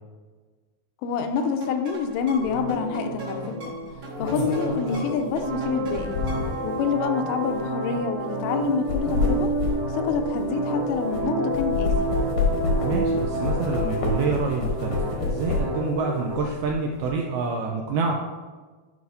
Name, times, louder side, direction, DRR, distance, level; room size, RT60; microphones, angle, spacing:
voice 1, 1.0-3.8 4.2-6.1 6.6-9.5 9.9-11.9, left 6 dB, 90° left, 6 dB, 2.9 m, -27 dB
sound 1, 1.4-6.6, right 2 dB, 40° right, 1.6 m, -39 dB
sound 2, 2.4-2.6 3.8-6.7 7.4-7.6 8.6-11.2 11.5-15.9 16.3-17.1, left 4 dB, 75° left, 1.8 m, -28 dB
sound 3, 2.4-16.4, right 1 dB, 60° right, 2.5 m, -29 dB
voice 2, 12.8-18.2, right 4 dB, 90° right, 0 dB, 2.2 m, -27 dB
11.0 x 4.9 x 2.6 m, 1.4 s
omnidirectional pair, 5.0 m